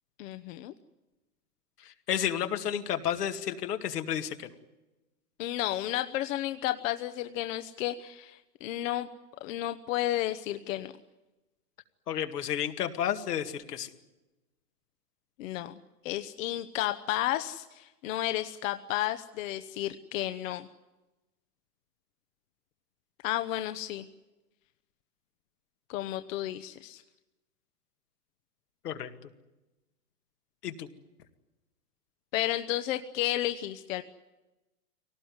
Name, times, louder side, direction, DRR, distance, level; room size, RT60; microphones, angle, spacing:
voice 1, 0.2-0.7 5.4-9.1 9.4-10.9 15.4-15.7 16.0-20.7 23.2-24.1 25.9-27.0 32.3-34.0, left 14 dB, 55° left, 9 dB, 1.1 m, -32 dB
voice 2, 1.8-4.5 12.1-13.9 28.8-29.3 30.6-30.9, left 9 dB, 80° left, 6 dB, 2.2 m, -32 dB
23.5 x 18.5 x 9.6 m, 1.1 s
hypercardioid pair, 120°, 46 cm